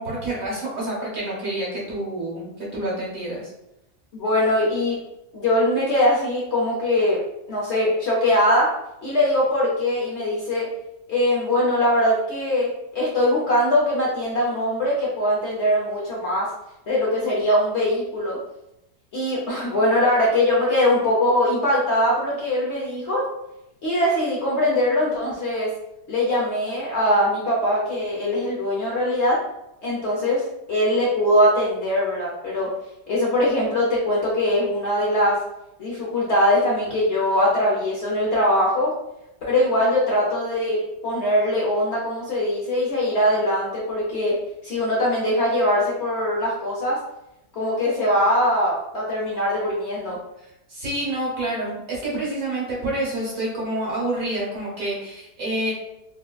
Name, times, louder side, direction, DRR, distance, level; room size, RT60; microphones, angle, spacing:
voice 1, 0.0-3.5 50.4-55.7, right 1 dB, 60° right, -5 dB, 1.4 m, -28 dB
voice 2, 4.1-5.0 5.3-7.2 7.5-8.7 9.0-10.7 11.1-16.5 16.9-18.4 19.1-23.3 23.8-25.7 26.1-29.4 29.8-32.7 33.1-35.4 35.8-38.9 39.5-44.4 44.6-47.0 47.5-50.2, left 1 dB, 60° left, -5 dB, 0.7 m, -21 dB
4.0 x 2.1 x 2.3 m, 0.87 s
omnidirectional pair, 1.8 m